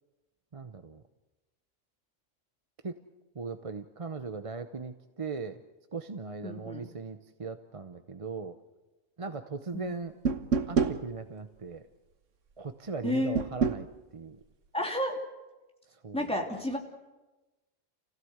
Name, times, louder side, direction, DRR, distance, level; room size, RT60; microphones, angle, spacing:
voice 1, 0.5-1.0 2.8-3.0 3.3-5.6 5.9-8.6 9.2-10.1 10.7-11.8 12.6-14.4 15.9-16.4, right 4 dB, 30° right, 8 dB, 0.7 m, -39 dB
voice 2, 6.4-6.9 9.7-9.9 13.0-13.4 14.7-15.1 16.1-16.8, left 1 dB, 5° left, 0 dB, 3.0 m, -31 dB
sound 1, 10.2-11.0 13.3-13.8, right 5 dB, 75° right, 1.4 m, -26 dB
28.5 x 16.0 x 8.0 m, 1.1 s
omnidirectional pair, 1.3 m